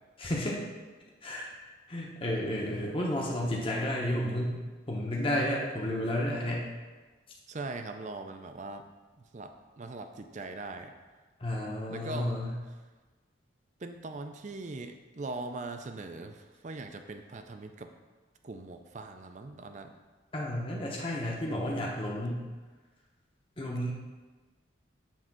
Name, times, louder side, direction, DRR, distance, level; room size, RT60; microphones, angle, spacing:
voice 1, 0.2-0.6 1.2-1.5 1.9-4.6 4.9-6.7 11.4-12.6 20.3-22.4 23.6-23.9, left 1 dB, 30° left, -3 dB, 0.9 m, -31 dB
voice 2, 7.5-8.8 9.3-10.9 11.9-12.3 13.8-17.9 18.4-19.9, right 3 dB, 40° right, 7 dB, 0.5 m, -41 dB
7.4 x 3.3 x 5.9 m, 1.3 s
head